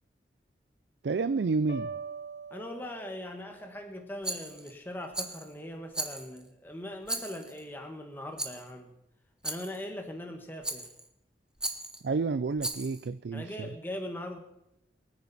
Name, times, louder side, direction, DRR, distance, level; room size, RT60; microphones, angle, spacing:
voice 1, 1.0-1.9 12.0-13.7, right 4 dB, 75° right, 12 dB, 0.4 m, -30 dB
sound 1, 1.7-3.6, right 4 dB, 60° left, 3.1 m, -42 dB
voice 2, 2.5-8.9 9.4-10.9 13.3-14.4, left 1 dB, 10° left, 3 dB, 1.3 m, -40 dB
Rattle, 4.2-4.7 5.1-5.5 5.9-6.5 7.1-7.6 8.4-8.7 9.4-9.8 10.6-11.1 11.6-12.0 12.6-13.1, right 2 dB, 5° right, 0.9 m, -36 dB
22.5 x 9.6 x 4.1 m, 0.84 s
head